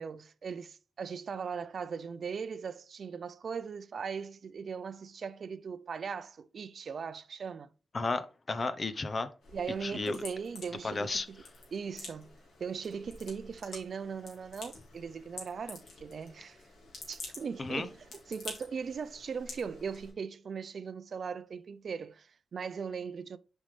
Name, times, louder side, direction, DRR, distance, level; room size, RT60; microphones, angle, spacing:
voice 1, 0.0-7.7 9.5-11.4 11.7-12.3 12.6-16.6 17.1-23.4, right 6 dB, 55° right, 0.5 m, -39 dB
voice 2, 7.9-9.3 9.8-10.2 10.8-11.3 17.6-17.9, left 3 dB, 35° left, 0.7 m, -33 dB
sound 1, 9.4-20.1, left 3 dB, 85° left, 3.4 m, -49 dB
7.3 x 5.4 x 3.3 m
wide cardioid pair, 130°, 0 cm